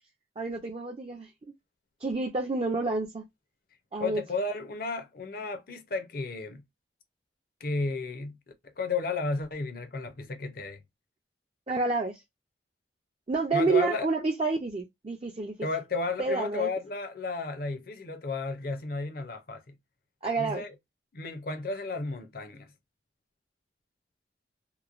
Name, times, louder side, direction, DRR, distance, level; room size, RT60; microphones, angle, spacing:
voice 1, 0.4-1.3 2.0-3.2 3.9-4.2 11.7-12.2 13.3-15.5 16.2-16.7 20.2-20.6, right 3 dB, 30° right, 0.4 m, -29 dB
voice 2, 4.0-6.6 7.6-8.4 8.8-10.8 13.5-14.1 15.6-19.7 20.4-20.7 21.1-22.7, left 3 dB, 55° left, 0.6 m, -33 dB
3.0 x 2.1 x 2.4 m
head